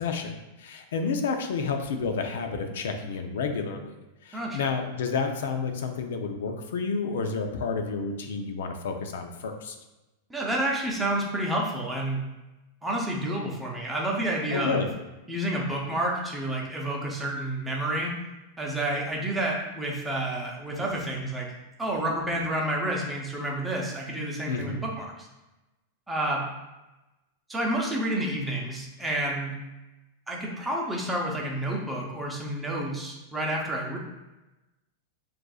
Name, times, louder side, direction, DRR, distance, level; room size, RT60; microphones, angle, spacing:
voice 1, 0.0-3.9 4.2-9.8 14.5-14.9 24.5-24.8, left 5 dB, 85° left, 5 dB, 0.6 m, -30 dB
voice 2, 4.3-4.7 10.3-12.2 12.8-14.8 15.3-18.1 18.6-21.5 21.8-25.3 26.1-26.5 27.5-29.6 30.3-34.0, right 1 dB, 5° right, -2 dB, 0.7 m, -29 dB
7.6 x 2.6 x 2.4 m, 1.0 s
supercardioid pair, 155°, 0 cm